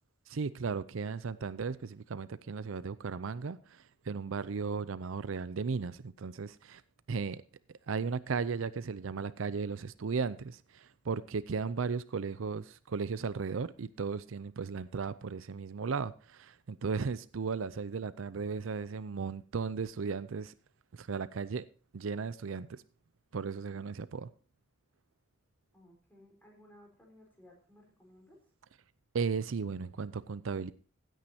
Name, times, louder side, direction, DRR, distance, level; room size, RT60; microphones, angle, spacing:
voice 1, 0.3-6.8 7.1-7.4 7.9-20.5 20.9-21.7 21.9-22.8 23.3-24.3 29.1-30.7, right 5 dB, 80° right, 0.5 m, -36 dB
voice 2, 25.7-28.4, left 1 dB, 10° left, 4.5 m, -59 dB
16.0 x 9.2 x 2.8 m
head